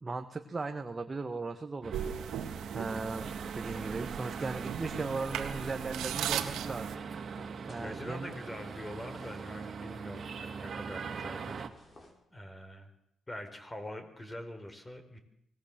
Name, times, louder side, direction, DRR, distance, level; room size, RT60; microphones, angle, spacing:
voice 1, 0.0-2.1 2.4-7.0 7.7-8.3, right 3 dB, 25° right, 5 dB, 1.7 m, -37 dB
sound 1, 1.8-11.7, right 6 dB, 50° right, 2.7 m, -41 dB
sound 2, 1.9-7.0, right 10 dB, 80° right, 2.0 m, -38 dB
sound 3, 3.0-12.1, left 2 dB, 35° left, 7.0 m, -57 dB
voice 2, 7.8-11.6 12.3-12.9 13.3-15.2, left 1 dB, 15° left, 8 dB, 4.8 m, -44 dB
24.5 x 19.0 x 7.6 m, 0.78 s
cardioid pair, 90°, 0 cm